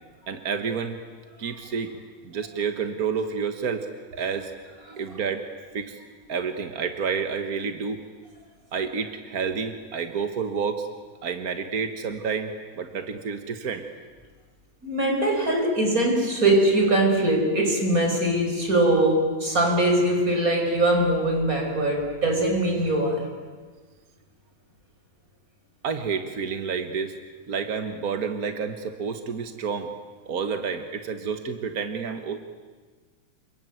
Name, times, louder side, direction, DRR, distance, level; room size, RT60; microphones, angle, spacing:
voice 1, 0.3-1.0 1.4-2.0 2.2-3.9 4.1-4.5 5.0-5.4 5.7-6.0 6.3-8.0 8.7-10.9 11.2-12.5 12.8-13.9 25.8-27.1 27.5-29.9 30.3-32.4, right 6 dB, 55° right, 7 dB, 1.0 m, -29 dB
voice 2, 14.8-23.3, right 1 dB, 25° right, 2 dB, 5.4 m, -22 dB
28.5 x 22.0 x 9.3 m, 1.4 s
omnidirectional pair, 3.6 m